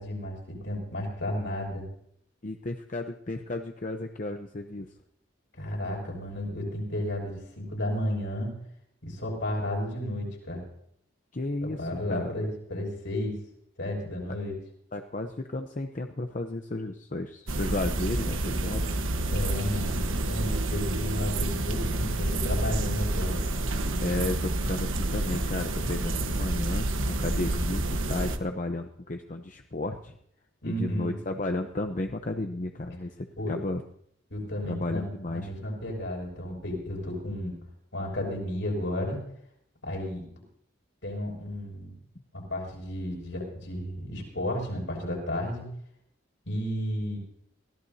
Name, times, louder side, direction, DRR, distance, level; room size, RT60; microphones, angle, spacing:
voice 1, 0.0-1.9 5.6-8.6 9.0-10.6 11.6-13.3 13.8-14.5 19.3-23.4 30.6-31.1 33.4-33.6 34.3-37.5 37.9-39.2 39.8-40.2 41.0-42.0 42.3-45.7 46.4-47.2, left 1 dB, 70° left, -1 dB, 6.5 m, -33 dB
voice 2, 2.4-4.9 11.3-12.3 14.9-18.9 24.0-30.2 30.6-33.8 34.6-35.5, left 2 dB, 40° left, 5 dB, 0.8 m, -33 dB
sound 1, 17.5-28.4, right 1 dB, 85° right, 1.3 m, -29 dB
23.0 x 17.0 x 2.8 m, 0.71 s
head